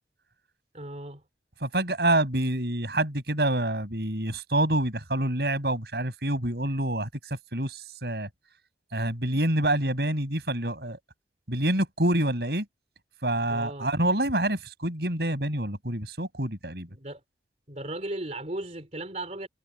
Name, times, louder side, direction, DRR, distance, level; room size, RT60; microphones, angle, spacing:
voice 1, 0.7-1.2 13.5-13.9 16.9-17.2 17.7-19.5, right 1 dB, 40° right, 3.2 m, -36 dB
voice 2, 1.6-8.3 8.9-11.0 11.5-12.7 13.2-16.9, right 1 dB, 60° right, 7.9 m, -27 dB
head